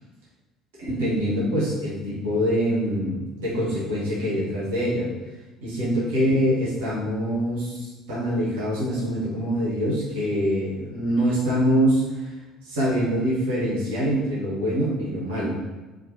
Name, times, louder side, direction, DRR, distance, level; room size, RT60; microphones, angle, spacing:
voice 1, 0.8-5.1 5.6-12.4 12.6-15.6, equal, 75° right, -8 dB, 1.2 m, -24 dB
4.2 x 2.5 x 2.9 m, 1.2 s
hypercardioid pair, 60°, 0 cm